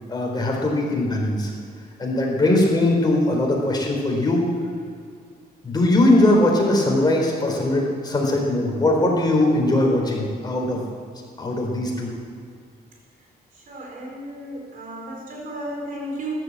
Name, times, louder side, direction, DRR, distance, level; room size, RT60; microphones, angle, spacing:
voice 1, 0.1-1.5 2.0-4.5 5.6-10.8 11.4-12.1, left 1 dB, 25° left, -1 dB, 4.1 m, -20 dB
voice 2, 13.7-16.3, right 1 dB, 55° right, 0 dB, 4.4 m, -34 dB
14.0 x 11.5 x 7.6 m, 2.2 s
cardioid pair, 120°, 17 cm